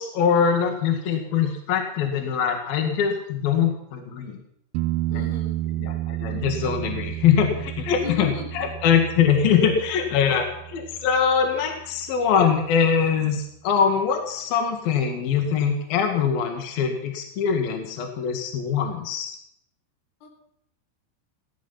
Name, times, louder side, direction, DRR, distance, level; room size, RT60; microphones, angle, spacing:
voice 1, 0.0-4.4 5.1-5.2 5.8-19.4, left 7 dB, 60° left, 5 dB, 3.3 m, -23 dB
sound 1, 4.7-12.4 15.4-15.5, right 16 dB, 85° right, 2.1 m, -32 dB
voice 2, 5.1-5.6 8.0-8.7 20.2-20.3, left 4 dB, 85° left, 2 dB, 6.5 m, -35 dB
17.5 x 14.0 x 5.7 m, 0.71 s
omnidirectional pair, 5.5 m